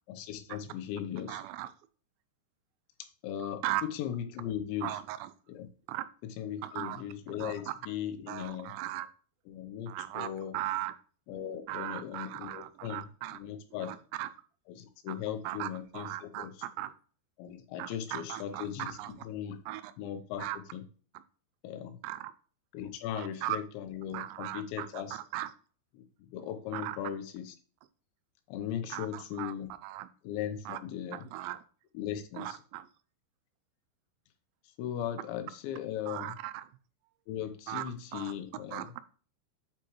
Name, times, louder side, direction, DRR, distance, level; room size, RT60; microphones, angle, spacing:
voice 1, 0.1-1.5 3.0-5.0 5.5-5.7 6.2-8.7 9.5-10.6 11.3-14.0 14.7-16.7 17.4-19.6 20.0-20.8 21.6-22.0 22.7-25.2 25.9-27.6 28.5-29.7 30.2-31.3 31.9-32.6 34.6-36.4 37.3-38.9, left 10 dB, 90° left, 9 dB, 3.1 m, -38 dB
voice 2, 1.3-1.7 3.4-3.8 4.8-5.3 5.9-6.1 6.6-7.0 7.4-7.7 8.3-9.1 9.9-10.9 11.7-13.4 13.7-14.3 15.1-15.2 15.4-16.9 17.8-19.2 19.7-19.9 20.4-20.6 22.0-22.3 23.1-23.6 24.1-25.5 26.7-27.0 28.9-30.1 30.7-30.8 31.1-31.6 32.3-32.9 36.1-36.7 37.7-37.8 38.1-38.4 38.7-39.0, right 15 dB, 85° right, 13 dB, 2.8 m, -38 dB
8.6 x 4.7 x 3.0 m, 0.40 s
omnidirectional pair, 5.1 m